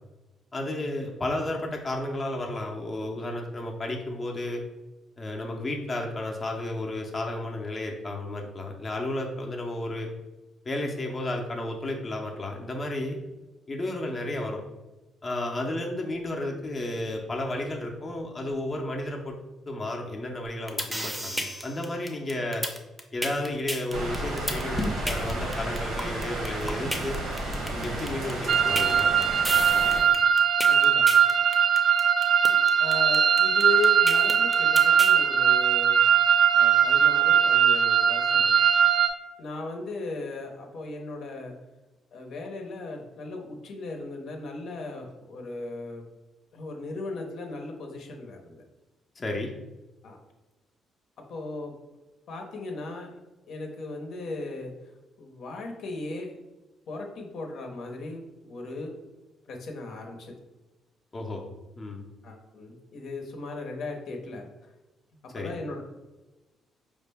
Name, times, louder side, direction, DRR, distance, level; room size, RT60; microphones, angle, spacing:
voice 1, 0.5-4.6 5.2-10.1 10.6-13.2 13.7-14.6 15.2-19.4 19.7-22.7 23.1-27.2 27.7-29.1 49.2-49.5 61.1-61.4 61.8-62.0 65.3-65.6, left 1 dB, 30° left, 1 dB, 0.6 m, -32 dB
sound 1, 20.5-35.2, equal, 10° right, 0.6 m, -32 dB
sound 2, 23.9-30.0, right 1 dB, 85° right, 1.0 m, -32 dB
sound 3, 28.5-39.1, right 8 dB, 55° right, 0.4 m, -20 dB
voice 2, 30.7-31.2 32.8-36.0 36.5-38.6 39.4-41.5 42.1-46.1 46.5-48.6 50.0-50.2 51.3-51.7 52.3-53.2 53.5-54.7 55.2-56.4 56.9-59.0 59.5-60.3 62.2-64.5 65.3-65.8, left 2 dB, 70° left, 2 dB, 0.8 m, -37 dB
4.7 x 2.1 x 3.4 m, 1.1 s
cardioid pair, 90°, 0 cm